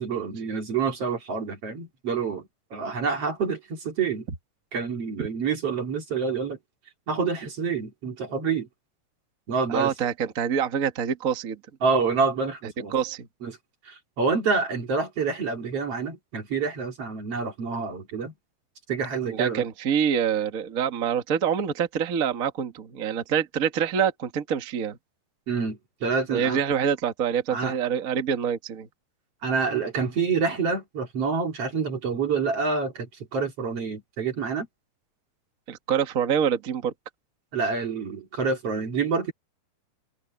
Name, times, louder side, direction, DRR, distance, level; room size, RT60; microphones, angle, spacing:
voice 1, 0.0-4.3 4.7-6.6 7.1-8.7 9.5-9.9 11.8-12.9 13.4-13.6 13.8-18.3 18.9-19.7 25.5-26.6 27.5-27.8 29.4-34.7 37.5-39.3, right 5 dB, 40° right, 3.0 m, -27 dB
voice 2, 9.7-11.6 12.9-13.3 19.2-25.0 26.3-28.9 35.7-36.9, right 8 dB, 75° right, 0.7 m, -26 dB
omnidirectional pair, 4.5 m